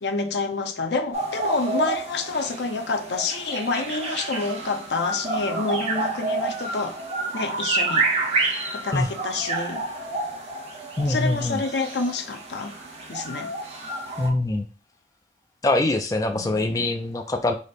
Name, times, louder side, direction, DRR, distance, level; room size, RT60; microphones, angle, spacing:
voice 1, 0.0-7.0 7.3-8.1 8.4-9.9 11.1-12.7 13.1-13.5 16.3-16.8, left 3 dB, 80° left, 0.6 m, -28 dB
sound 1, 1.1-14.3, right 3 dB, 35° right, 1.2 m, -29 dB
voice 2, 11.0-11.6 14.2-14.7 15.6-17.6, left 2 dB, 20° left, 0.3 m, -23 dB
5.0 x 2.1 x 4.1 m
head